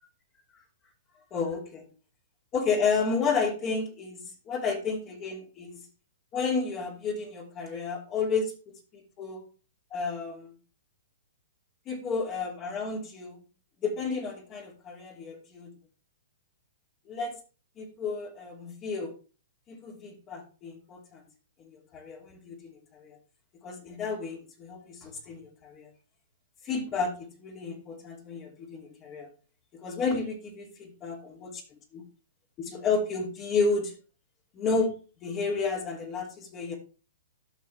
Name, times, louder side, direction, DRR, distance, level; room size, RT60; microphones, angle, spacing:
voice 1, 1.3-1.9 2.5-5.8 6.3-8.5 8.9-9.4 9.9-10.5 11.9-13.4 13.8-15.7 17.1-17.4 17.8-19.1 19.7-21.2 21.6-23.2 23.6-25.9 26.6-29.3 29.8-31.6 31.9-32.0 32.6-34.0 34.5-36.7, left 4 dB, 30° left, -1 dB, 2.8 m, -31 dB
14.0 x 5.6 x 3.4 m, 0.35 s
hypercardioid pair, 125°, 0 cm